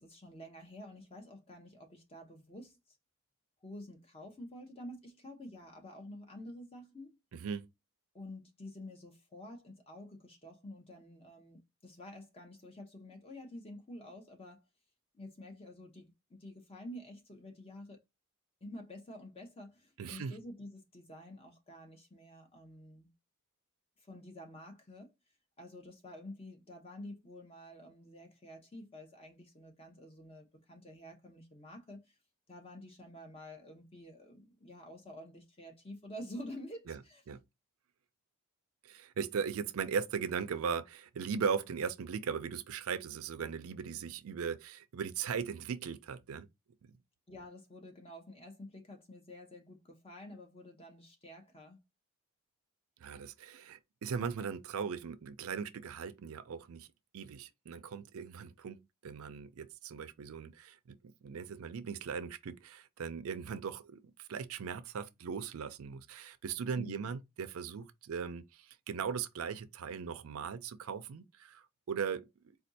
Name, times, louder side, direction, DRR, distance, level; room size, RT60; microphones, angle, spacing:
voice 1, 0.0-3.0 3.6-7.2 8.1-14.6 15.1-18.0 18.6-23.1 24.0-25.1 25.6-32.1 32.5-37.2 47.3-51.8 66.7-67.1, left 1 dB, 25° left, 0.8 m, -49 dB
voice 2, 7.3-7.7 20.0-20.3 36.9-37.0 37.3-37.4 38.8-46.5 46.8-46.9 53.0-56.9 57.1-61.0 61.2-72.6, right 6 dB, 70° right, 0.4 m, -39 dB
4.3 x 2.3 x 2.6 m
head